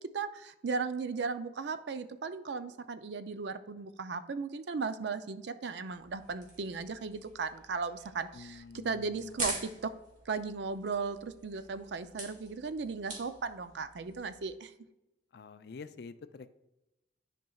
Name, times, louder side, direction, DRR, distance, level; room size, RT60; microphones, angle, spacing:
voice 1, 0.1-9.9 10.3-14.7, right 4 dB, 65° right, 11 dB, 0.5 m, -36 dB
sound 1, 5.9-14.5, right 2 dB, 40° right, 1.9 m, -44 dB
voice 2, 8.3-9.5 15.3-16.5, left 4 dB, 60° left, 12 dB, 0.4 m, -47 dB
10.5 x 5.3 x 2.3 m, 0.92 s
head